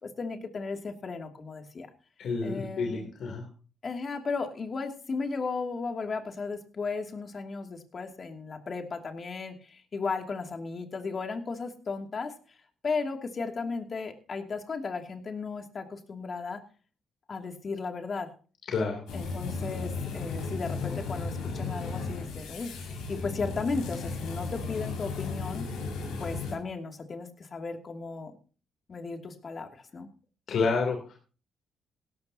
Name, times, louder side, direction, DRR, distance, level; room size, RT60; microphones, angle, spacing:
voice 1, 0.0-1.9 2.4-3.1 3.8-12.3 12.8-16.6 17.3-18.3 19.1-25.7 26.2-28.3 28.9-30.1, left 4 dB, 40° left, 4 dB, 2.6 m, -35 dB
voice 2, 2.2-3.5 18.7-19.0 30.5-31.1, left 4 dB, 65° left, 1 dB, 3.2 m, -29 dB
sound 1, 19.1-26.5, left 4 dB, 85° left, 6.2 m, -35 dB
17.0 x 14.0 x 2.9 m, 0.38 s
cardioid pair, 90°, 0 cm